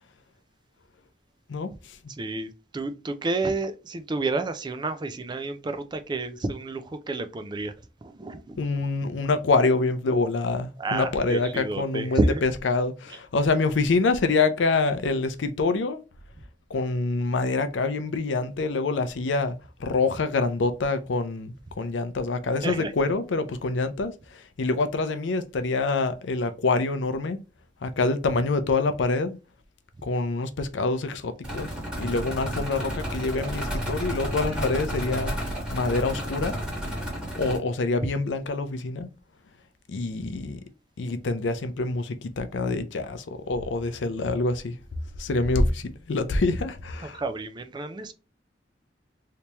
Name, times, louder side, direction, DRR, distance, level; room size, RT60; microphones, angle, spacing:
voice 1, 1.5-2.0 8.6-16.0 16.7-27.4 27.8-29.4 30.0-31.7 32.0-35.3 35.7-36.6 37.4-39.1 39.9-40.6 41.0-44.8 45.2-47.2, left 3 dB, 75° left, 0.5 m, -26 dB
voice 2, 2.2-7.7 8.0-8.6 10.8-12.4 22.6-22.9 47.1-48.1, right 2 dB, 25° right, 0.4 m, -30 dB
sound 1, 31.4-37.6, equal, 5° right, 1.4 m, -31 dB
3.4 x 2.8 x 2.9 m
head